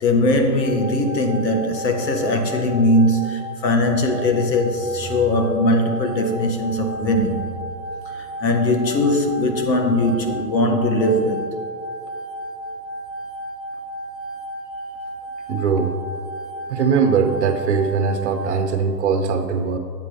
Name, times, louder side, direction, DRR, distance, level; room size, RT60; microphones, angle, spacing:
voice 1, 0.0-7.5 8.1-11.5, left 1 dB, 90° left, 1.4 m, -20 dB
sound 1, 0.6-18.6, right 1 dB, 70° left, 2.1 m, -33 dB
voice 2, 15.5-15.9 16.7-19.8, right 5 dB, 45° right, 0.7 m, -20 dB
8.4 x 7.5 x 3.4 m
hypercardioid pair, 170°, 50 cm